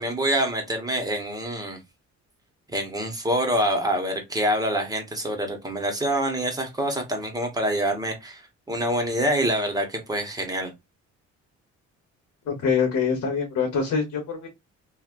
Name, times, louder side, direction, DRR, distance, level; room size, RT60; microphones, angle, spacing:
voice 1, 0.0-1.8 2.7-10.7, right 1 dB, 10° right, 1.2 m, -26 dB
voice 2, 12.5-14.5, left 6 dB, 70° left, 1.2 m, -24 dB
3.2 x 2.6 x 2.5 m
cardioid pair, 90°, 30 cm